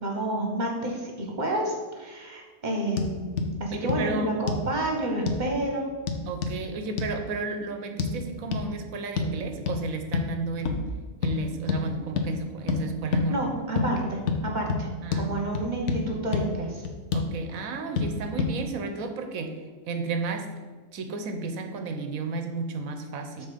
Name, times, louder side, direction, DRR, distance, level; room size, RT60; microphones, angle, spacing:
voice 1, 0.0-5.9 13.3-14.9 15.1-16.8, right 1 dB, 30° right, 0 dB, 1.1 m, -29 dB
sound 1, 3.0-3.1 3.4-3.5 3.9-4.0 4.5-4.7 5.3-5.4 6.1-6.6 7.0-7.1 8.0-8.1 8.5-8.7 9.2-9.3 9.7-9.8 10.1-10.3 10.7-10.9 11.2-11.4 11.7-11.8 12.2-12.3 12.7-12.8 13.1-13.3 13.8-13.9 14.3-14.4 14.7-14.8 15.1-15.3 15.6-16.0 16.3-16.4 16.9-17.3 18.0-18.1 18.4-18.5, left 5 dB, 55° left, 0.9 m, -27 dB
voice 2, 3.7-4.3 6.3-10.8 11.2-13.6 15.0-15.6 17.1-19.6 19.9-20.6 20.9-23.5, right 3 dB, 65° right, 6 dB, 1.1 m, -33 dB
7.0 x 4.3 x 5.1 m, 1.4 s
omnidirectional pair, 1.7 m